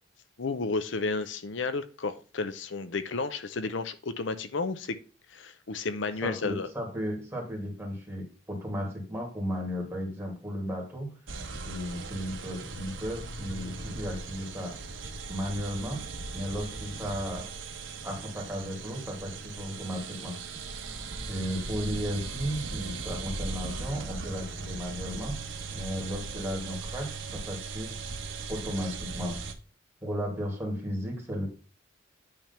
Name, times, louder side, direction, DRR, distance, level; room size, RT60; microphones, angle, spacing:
voice 1, 0.4-5.0 5.3-6.7, left 3 dB, 70° left, 0.7 m, -32 dB
voice 2, 6.2-11.2 11.6-14.8 15.3-16.1 16.3-17.5 18.0-20.6 21.3-25.5 25.7-28.0 28.5-29.4 30.0-31.5, equal, 15° right, 2.5 m, -35 dB
sound 1, 11.3-29.5, right 3 dB, 80° right, 1.2 m, -38 dB
8.9 x 3.5 x 5.6 m
head